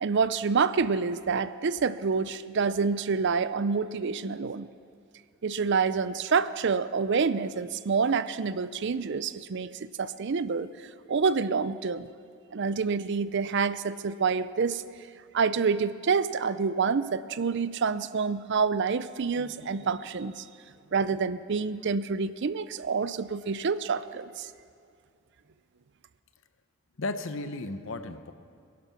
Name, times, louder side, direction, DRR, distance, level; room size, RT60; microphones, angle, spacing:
voice 1, 0.0-4.7 5.4-9.7 10.0-10.7 11.1-12.1 12.5-14.8 15.3-20.4 20.9-24.5, right 5 dB, 55° right, 15 dB, 0.5 m, -27 dB
voice 2, 27.0-28.3, left 2 dB, 65° left, 11 dB, 0.8 m, -34 dB
21.0 x 11.0 x 5.8 m, 2.4 s
head